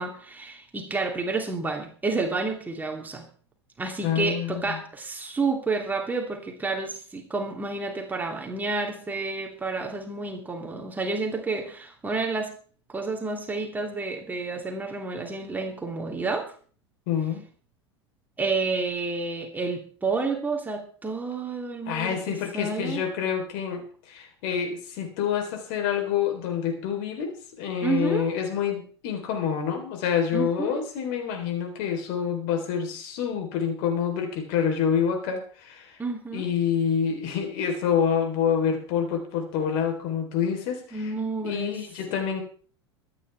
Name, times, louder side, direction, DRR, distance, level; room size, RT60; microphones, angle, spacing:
voice 1, 0.0-3.3 3.8-12.5 12.9-16.5 18.4-23.0 27.8-28.3 30.3-30.8 36.0-36.5 40.9-41.8 42.1-42.2, right 3 dB, 10° right, 1 dB, 2.9 m, -30 dB
voice 2, 4.0-4.8 17.1-17.5 21.9-36.0 36.3-41.1 41.4-42.4, left 8 dB, 50° left, 4 dB, 3.9 m, -27 dB
24.0 x 10.0 x 3.5 m, 0.44 s
figure-of-eight pair, 80°, 14 cm